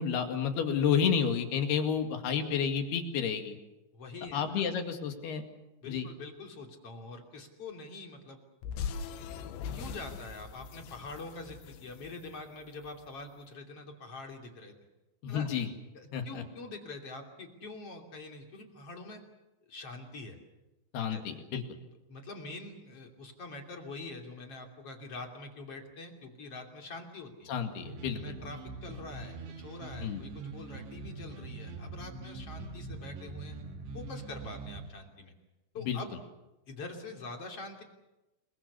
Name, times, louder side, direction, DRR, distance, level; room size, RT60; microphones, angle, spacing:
voice 1, 0.0-3.6 4.3-5.4 5.9-6.1 15.2-15.7 16.1-16.4 20.9-21.6 27.5-28.2 30.0-30.2 35.9-36.0, left 7 dB, 65° left, 5 dB, 4.0 m, -30 dB
voice 2, 3.9-4.7 5.8-8.4 9.7-14.8 15.3-15.5 15.9-19.2 19.7-20.4 21.1-21.2 21.8-27.5 28.1-33.6 33.9-35.3 35.7-36.2 36.7-37.8, left 3 dB, 35° left, 3 dB, 3.4 m, -45 dB
sound 1, 8.6-13.0, left 6 dB, 80° left, 3.6 m, -41 dB
sound 2, 27.8-34.9, right 3 dB, 70° right, 4.5 m, -43 dB
28.0 x 23.0 x 7.0 m, 1.0 s
omnidirectional pair, 5.2 m